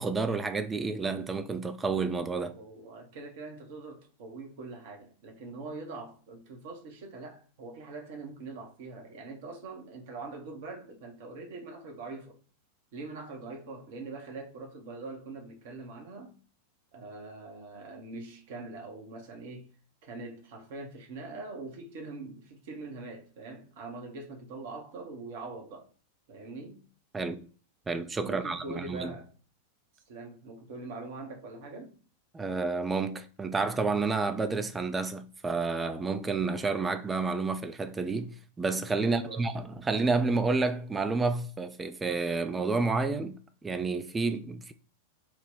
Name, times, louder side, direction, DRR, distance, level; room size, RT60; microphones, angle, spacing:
voice 1, 0.0-2.5 27.1-27.5 27.9-29.1 32.3-44.7, right 4 dB, 15° right, 0.3 m, -30 dB
voice 2, 2.5-12.4 12.9-16.4 16.9-19.7 20.0-25.9 26.3-26.8 28.2-29.3 30.1-31.9 39.0-39.5, right 3 dB, 50° right, 0.8 m, -43 dB
2.8 x 2.1 x 3.4 m
figure-of-eight pair, 90°, 0 cm